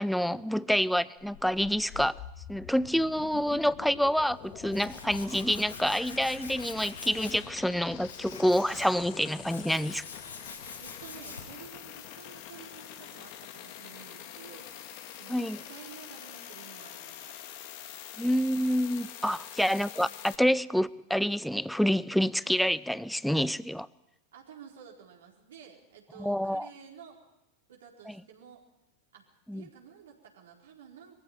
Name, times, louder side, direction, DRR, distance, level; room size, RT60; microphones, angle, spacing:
voice 1, 0.0-2.2 2.5-10.0 15.3-15.6 18.2-23.9 26.2-26.7 28.1-28.2 29.5-29.6, equal, ahead, 0.6 m, -27 dB
Sci-Fi Engine - Light Cycle, 1.2-20.4, left 10 dB, 55° left, 2.2 m, -45 dB
Tools, 4.2-11.6, left 3 dB, 90° left, 5.1 m, -46 dB
voice 2, 10.8-14.7 15.1-17.4 19.2-19.4 24.3-27.2 27.7-28.6 29.1-31.2, right 7 dB, 70° right, 4.4 m, -51 dB
22.5 x 15.0 x 8.7 m
figure-of-eight pair, 90°, 0 cm